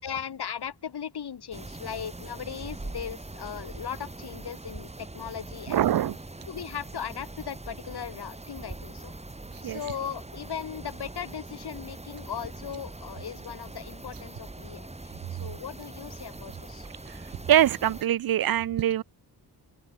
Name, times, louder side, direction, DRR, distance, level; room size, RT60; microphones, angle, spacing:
voice 1, 0.0-6.0 6.5-9.1 9.6-16.9, left 8 dB, 85° left, 3.7 m, -38 dB
sound 1, 1.5-18.0, right 2 dB, 15° right, 6.5 m, -42 dB
voice 2, 5.7-6.2 9.6-9.8 17.1-17.2 17.5-19.0, right 12 dB, 65° right, 0.5 m, -23 dB
open air
wide cardioid pair, 175°, 38 cm